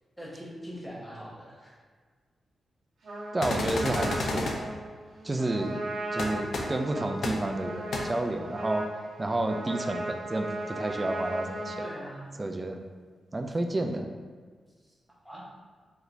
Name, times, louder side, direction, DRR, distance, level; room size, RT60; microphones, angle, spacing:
voice 1, 0.2-1.8 5.6-5.7 11.8-12.3 14.8-14.9 15.2-15.4, equal, ahead, -6 dB, 0.9 m, -42 dB
Trumpet, 3.0-11.9, right 1 dB, 60° right, 1.1 m, -37 dB
voice 2, 3.3-4.5 5.2-5.8 6.1-8.9 9.2-11.8 12.4-12.8 13.3-14.1, right 2 dB, 20° right, 4 dB, 0.3 m, -30 dB
sound 1, 3.4-4.5 6.2-6.3 6.5-6.6 7.2-7.3 7.9-8.0, left 2 dB, 55° left, 0.5 m, -30 dB
4.9 x 3.2 x 2.6 m, 1.5 s
wide cardioid pair, 160°, 0 cm